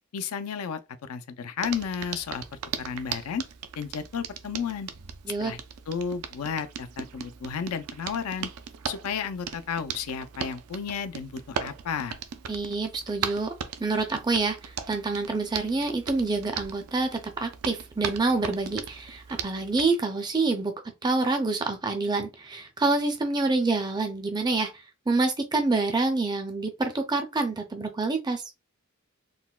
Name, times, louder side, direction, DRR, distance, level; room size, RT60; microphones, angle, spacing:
voice 1, 0.1-2.4 2.8-3.4 3.8-4.9 5.4-5.6 5.9-8.5 8.9-12.2, left 6 dB, 80° left, 0.4 m, -32 dB
Hands, 1.6-19.9, right 7 dB, 85° right, 0.4 m, -38 dB
voice 2, 12.5-13.5 13.8-20.7 21.0-24.7 25.1-28.4, right 3 dB, 20° right, 0.4 m, -27 dB
3.9 x 2.1 x 2.2 m
head